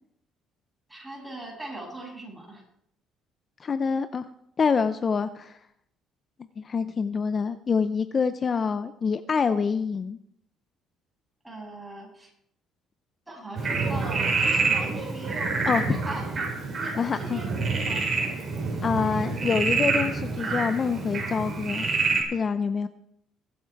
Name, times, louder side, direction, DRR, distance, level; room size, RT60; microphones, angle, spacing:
voice 1, 0.9-2.6 11.4-12.3 13.3-18.0, right 2 dB, 10° right, -2 dB, 7.2 m, -40 dB
voice 2, 3.6-4.3 4.6-5.6 6.6-10.2 15.7-16.0 17.0-17.4 18.8-21.9 22.3-22.9, left 5 dB, 35° left, 11 dB, 0.6 m, -26 dB
Frog, 13.6-22.2, right 4 dB, 40° right, 5.4 m, -27 dB
22.5 x 8.2 x 4.6 m, 0.72 s
cardioid pair, 110°, 0 cm